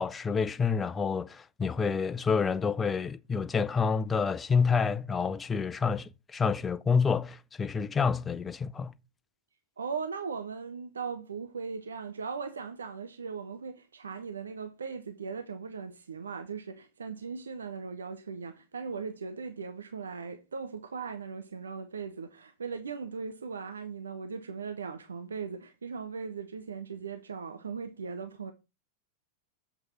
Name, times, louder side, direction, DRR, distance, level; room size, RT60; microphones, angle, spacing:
voice 1, 0.0-8.9, left 5 dB, 15° left, 0.6 m, -28 dB
voice 2, 9.8-28.5, right 5 dB, 70° right, 0.9 m, -38 dB
7.8 x 4.8 x 5.7 m
figure-of-eight pair, 90°, 0 cm